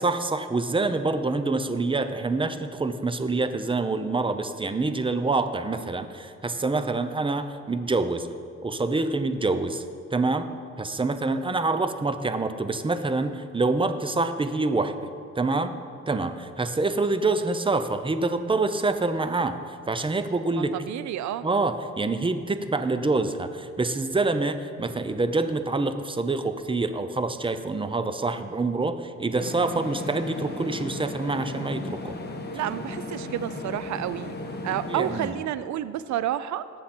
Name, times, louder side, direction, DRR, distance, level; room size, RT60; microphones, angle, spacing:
voice 1, 0.0-8.3 8.6-9.8 10.1-10.5 10.8-15.0 15.3-15.7 16.1-20.8 21.4-32.1 34.9-35.4, right 3 dB, 15° right, 10 dB, 0.7 m, -26 dB
voice 2, 20.6-21.5 32.5-34.3 34.6-36.7, right 12 dB, 70° right, 15 dB, 0.5 m, -30 dB
sound 1, 29.3-35.3, left 2 dB, 35° left, 1.4 m, -36 dB
18.5 x 7.4 x 4.4 m, 2.5 s
cardioid pair, 90°, 30 cm